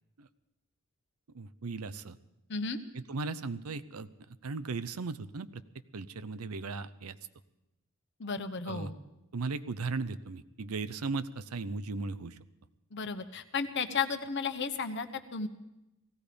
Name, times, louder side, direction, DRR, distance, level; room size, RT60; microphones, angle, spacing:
voice 1, 1.3-2.2 2.9-4.1 4.4-5.6 5.9-7.1 8.7-8.9 9.3-12.3, right 4 dB, 80° right, 15 dB, 0.7 m, -37 dB
voice 2, 8.2-8.9 12.9-15.5, left 5 dB, 50° left, 8 dB, 1.0 m, -34 dB
18.0 x 15.5 x 5.1 m, 0.95 s
head